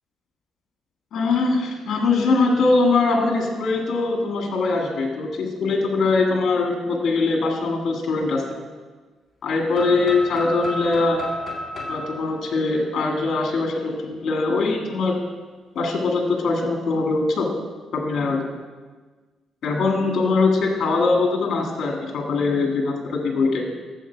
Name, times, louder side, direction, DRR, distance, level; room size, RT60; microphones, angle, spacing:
voice 1, 1.1-8.5 9.4-11.2 11.9-15.2 15.7-17.5 17.9-18.4 19.6-23.6, left 3 dB, 60° left, 1 dB, 2.0 m, -22 dB
sound 1, 9.7-13.6, left 1 dB, 35° left, 2.3 m, -33 dB
11.5 x 7.6 x 4.6 m, 1.4 s
cardioid pair, 90°, 0 cm